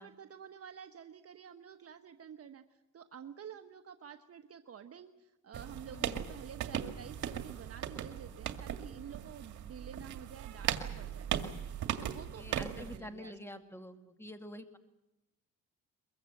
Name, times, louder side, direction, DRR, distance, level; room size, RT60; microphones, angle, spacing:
voice 1, 0.0-2.6 2.9-11.3 11.9-13.6, right 8 dB, 50° right, 7 dB, 1.2 m, -50 dB
sound 1, 5.5-13.0, right 9 dB, 70° right, 2.2 m, -38 dB
voice 2, 5.9-6.3 12.0-14.8, left 1 dB, 10° left, 7 dB, 2.1 m, -47 dB
23.0 x 22.5 x 7.9 m, 0.93 s
cardioid pair, 90°, 30 cm